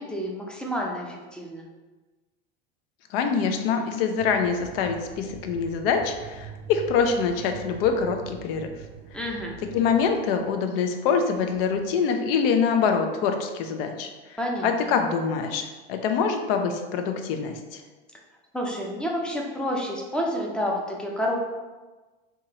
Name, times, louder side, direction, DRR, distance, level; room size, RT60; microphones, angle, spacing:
voice 1, 0.0-1.6 9.1-9.5 14.4-14.9 18.5-21.4, equal, 5° left, -1 dB, 0.4 m, -29 dB
voice 2, 3.1-8.7 9.7-14.4 14.6-17.8, left 6 dB, 70° left, 5 dB, 0.6 m, -25 dB
sound 1, 4.2-10.6 11.3-12.0, right 7 dB, 75° right, 0.6 m, -44 dB
3.5 x 2.7 x 2.9 m, 1.2 s
supercardioid pair, 115°, 30 cm